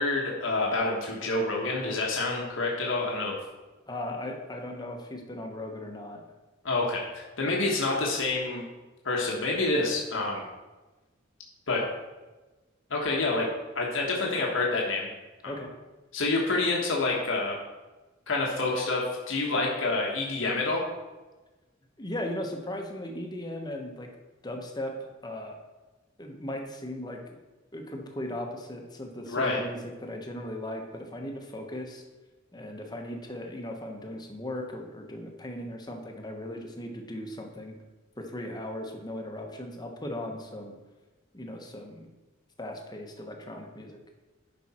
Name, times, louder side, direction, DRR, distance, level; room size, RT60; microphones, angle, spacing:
voice 1, 0.0-3.4 6.6-8.7 9.0-10.4 11.7-11.8 12.9-13.5 13.7-15.1 15.4-15.5 16.1-17.6 18.3-20.8 29.3-29.6, left 3 dB, 80° left, -2 dB, 1.4 m, -27 dB
voice 2, 3.9-6.2 15.5-15.7 22.0-24.1 24.4-25.5 26.2-27.2 27.7-32.0 32.5-37.8 38.2-40.7 41.3-42.1 42.6-44.0, left 1 dB, 20° left, 2 dB, 1.1 m, -37 dB
10.5 x 5.4 x 4.3 m, 1.2 s
head